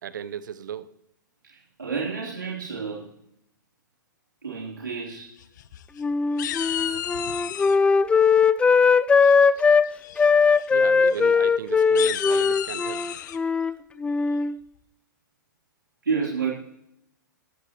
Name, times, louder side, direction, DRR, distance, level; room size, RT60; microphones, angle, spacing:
voice 1, 0.0-0.9 10.7-13.1, right 9 dB, 70° right, 15 dB, 0.9 m, -35 dB
voice 2, 1.5-3.1 4.4-5.4 6.4-6.9 16.0-16.5, right 5 dB, 85° right, -5 dB, 3.6 m, -30 dB
sound 1, 5.4-6.0 6.4-7.8 9.2-9.6 10.0-10.3 10.5-10.7 11.0-11.2 11.8-13.4, left 11 dB, 60° left, 0.9 m, -32 dB
Wind instrument woodwind instrument, 6.0-9.9 10.2-13.7 14.0-14.6, left 5 dB, 10° left, 0.4 m, -20 dB
19.0 x 13.5 x 3.1 m, 0.78 s
figure-of-eight pair, 110°, 11 cm